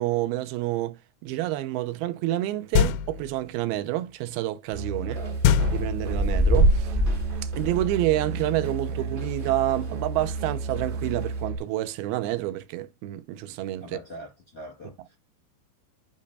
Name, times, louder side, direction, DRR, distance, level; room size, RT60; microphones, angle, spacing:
voice 1, 0.0-5.2 5.7-7.0 7.4-14.0, right 15 dB, 80° right, 2.6 m, -28 dB
sound 1, 2.7-3.4 5.4-6.4, left 8 dB, 85° left, 1.9 m, -23 dB
Musical instrument, 4.7-11.6, right 4 dB, 55° right, 2.7 m, -32 dB
sound 2, 5.2-9.9 10.2-11.4, right 1 dB, 25° right, 1.1 m, -26 dB
voice 2, 13.8-15.2, equal, 35° left, 1.0 m, -42 dB
9.1 x 5.3 x 2.6 m
omnidirectional pair, 4.5 m